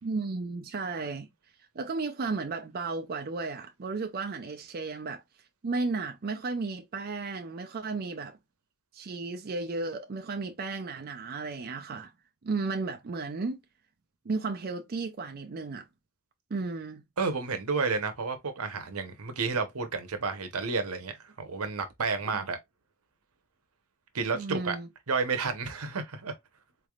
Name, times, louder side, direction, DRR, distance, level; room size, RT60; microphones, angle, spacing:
voice 1, 0.0-1.3 1.7-5.2 5.6-8.4 8.9-12.1 12.4-13.6 14.3-15.9 16.5-17.0 22.3-22.5 24.3-24.9, right 3 dB, 45° right, 0.4 m, -34 dB
voice 2, 17.2-22.6 24.1-24.8 25.1-26.3, right 4 dB, 85° right, 0.9 m, -31 dB
4.1 x 3.4 x 2.3 m
head